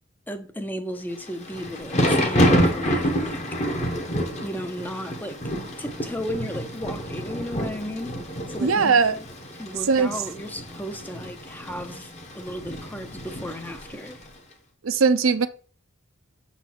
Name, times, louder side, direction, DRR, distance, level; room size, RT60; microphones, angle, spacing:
voice 1, 0.3-3.4 4.4-5.4 5.8-8.2 8.5-9.2 9.6-14.3, equal, 10° left, 0.6 m, -35 dB
Thunder / Rain, 1.2-14.3, equal, 30° left, 1.1 m, -28 dB
voice 2, 8.6-9.2 9.9-10.2 14.8-15.5, right 5 dB, 75° right, 0.6 m, -19 dB
6.7 x 4.1 x 6.0 m
head